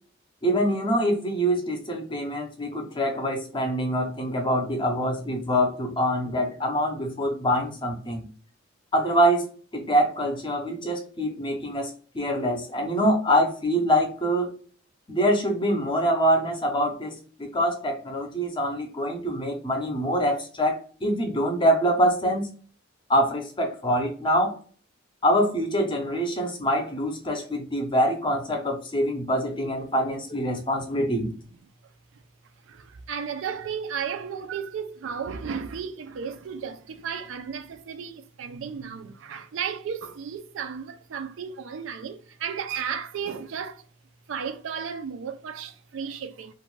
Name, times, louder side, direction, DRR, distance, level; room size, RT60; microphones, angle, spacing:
voice 1, 0.4-8.3 8.9-9.5 9.7-14.5 15.1-22.5 23.1-24.6 25.2-31.3, equal, 25° left, 0.6 m, -25 dB
voice 2, 32.6-43.8 44.3-46.5, right 7 dB, 70° right, 0.4 m, -34 dB
2.5 x 2.2 x 3.0 m
head